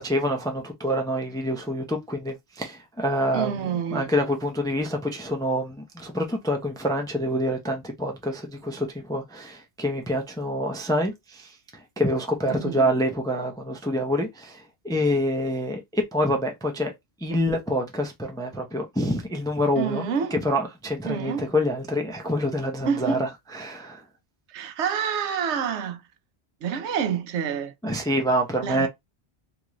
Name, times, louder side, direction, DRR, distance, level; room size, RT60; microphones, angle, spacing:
voice 1, 0.0-16.9 17.2-24.0 27.8-28.9, equal, 5° left, 0.4 m, -27 dB
voice 2, 3.3-4.1 12.5-12.9 17.3-17.4 19.7-20.4 21.0-21.5 22.8-23.2 24.5-26.0 26.6-27.7 28.6-28.9, right 7 dB, 85° right, 0.9 m, -28 dB
2.9 x 2.5 x 3.0 m
omnidirectional pair, 1.1 m